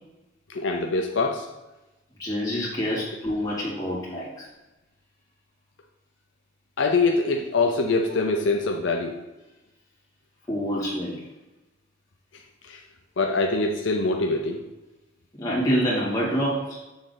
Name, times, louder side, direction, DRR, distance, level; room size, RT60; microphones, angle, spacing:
voice 1, 0.5-1.5 6.8-9.1 12.7-12.8 13.2-14.6, left 3 dB, 75° left, 2 dB, 0.6 m, -24 dB
voice 2, 2.2-4.5 10.5-11.3 15.4-16.8, equal, 20° left, -7 dB, 2.1 m, -26 dB
7.0 x 3.7 x 3.9 m, 1.0 s
head